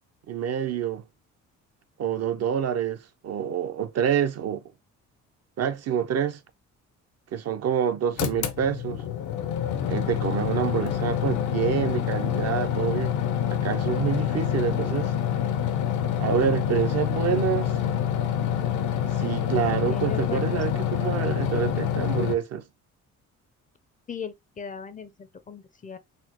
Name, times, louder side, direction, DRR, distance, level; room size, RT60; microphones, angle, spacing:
voice 1, 0.3-1.0 2.0-4.6 5.6-6.4 7.3-9.0 9.9-13.1 13.5-15.1 16.2-17.7 19.1-22.7, right 8 dB, 55° right, 0.5 m, -27 dB
sound 1, 8.2-22.3, left 9 dB, 80° left, 0.7 m, -27 dB
voice 2, 18.7-20.5 24.1-26.0, left 7 dB, 25° left, 0.4 m, -39 dB
4.1 x 2.0 x 2.8 m
cardioid pair, 90°, 30 cm